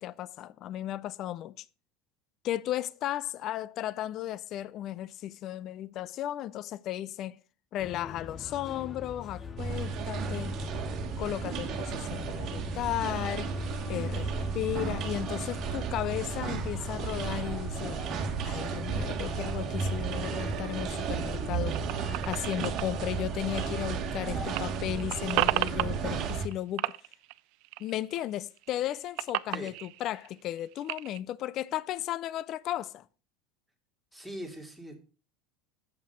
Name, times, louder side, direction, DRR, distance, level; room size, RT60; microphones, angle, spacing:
voice 1, 0.0-1.7 2.4-7.4 7.7-10.6 11.2-13.5 13.9-18.0 18.4-21.8 22.3-26.9 27.8-33.1, left 13 dB, 50° left, 0.4 m, -35 dB
sound 1, 7.8-26.4, left 5 dB, 30° left, 1.0 m, -44 dB
sound 2, 9.6-26.5, right 5 dB, 45° right, 1.5 m, -33 dB
sound 3, 19.4-24.2 24.4-26.5 26.8-28.2 28.6-31.2, right 20 dB, 65° right, 0.4 m, -35 dB
voice 2, 34.1-35.0, right 1 dB, ahead, 2.5 m, -41 dB
8.0 x 5.6 x 5.8 m
supercardioid pair, 105°, 0 cm